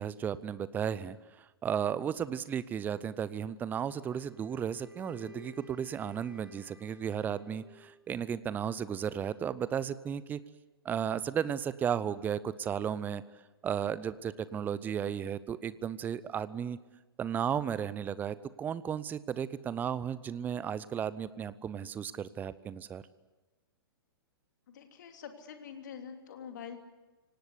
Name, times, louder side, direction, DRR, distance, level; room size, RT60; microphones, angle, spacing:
voice 1, 0.0-10.4 10.8-13.2 13.6-16.8 17.2-23.0, right 8 dB, 15° right, 17 dB, 0.7 m, -34 dB
Wind instrument woodwind instrument, 3.6-8.0, left 3 dB, 80° right, 4.6 m, -55 dB
voice 2, 24.7-26.8, left 7 dB, 50° left, 5 dB, 3.1 m, -45 dB
26.0 x 18.5 x 8.2 m, 1.1 s
figure-of-eight pair, 110°, 12 cm